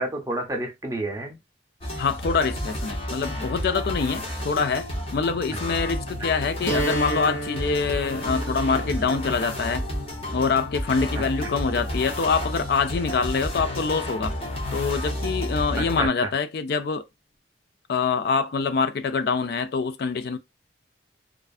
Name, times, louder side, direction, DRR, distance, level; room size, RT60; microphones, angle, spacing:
voice 1, 0.0-1.4 11.4-11.5 15.8-16.3, right 2 dB, 15° right, 0.5 m, -30 dB
sound 1, 1.8-16.1, left 1 dB, 30° left, 0.8 m, -31 dB
voice 2, 2.0-9.8 10.3-14.4 14.7-17.0 17.9-20.4, left 5 dB, 55° left, 0.3 m, -25 dB
sound 2, 6.7-12.6, right 1 dB, 85° left, 1.0 m, -34 dB
2.5 x 2.4 x 2.3 m
head